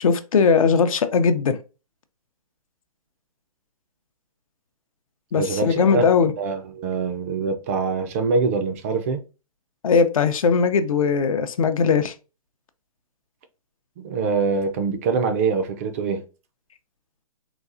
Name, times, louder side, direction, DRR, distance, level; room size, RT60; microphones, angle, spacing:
voice 1, 0.0-1.6 5.3-6.3 9.8-12.1, left 5 dB, 70° left, 0.5 m, -19 dB
voice 2, 5.4-6.1 6.4-9.2 14.0-16.2, right 4 dB, 25° right, 0.3 m, -24 dB
4.0 x 2.4 x 2.4 m
hypercardioid pair, 140°, 19 cm